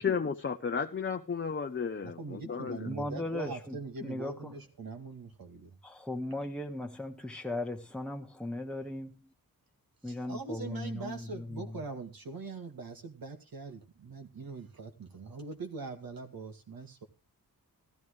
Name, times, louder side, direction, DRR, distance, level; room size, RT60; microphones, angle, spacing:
voice 1, 0.0-2.9, left 6 dB, 30° left, 0.7 m, -33 dB
voice 2, 2.0-5.8 10.0-17.1, right 4 dB, 70° right, 2.1 m, -42 dB
voice 3, 2.9-4.6 5.8-9.1 10.0-11.8, left 1 dB, 5° left, 1.6 m, -37 dB
14.5 x 14.0 x 3.3 m
wide cardioid pair, 145°, 36 cm